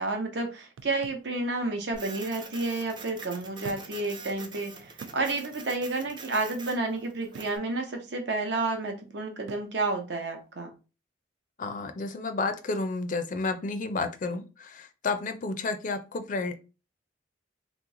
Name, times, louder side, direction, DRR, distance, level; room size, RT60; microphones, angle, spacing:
voice 1, 0.0-10.7, right 2 dB, 65° right, 0.8 m, -31 dB
sound 1, 0.8-1.3 2.4-2.5 3.6-4.1 4.5-4.6 5.0-5.3 7.3-7.6 9.5-9.8, right 5 dB, 90° right, 0.3 m, -45 dB
Printer, 1.9-7.6, right 4 dB, 25° right, 0.4 m, -45 dB
voice 2, 11.6-16.6, left 3 dB, 45° left, 0.4 m, -31 dB
2.9 x 2.0 x 3.6 m
head